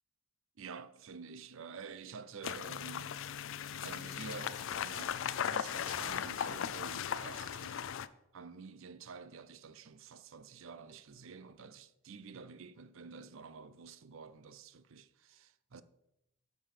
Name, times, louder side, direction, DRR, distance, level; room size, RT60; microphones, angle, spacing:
voice 1, 0.6-3.2 3.8-7.9 8.3-15.8, right 5 dB, 60° right, 0.5 m, -49 dB
sound 1, 2.4-8.1, left 8 dB, 60° left, 0.4 m, -38 dB
8.8 x 5.2 x 6.7 m
head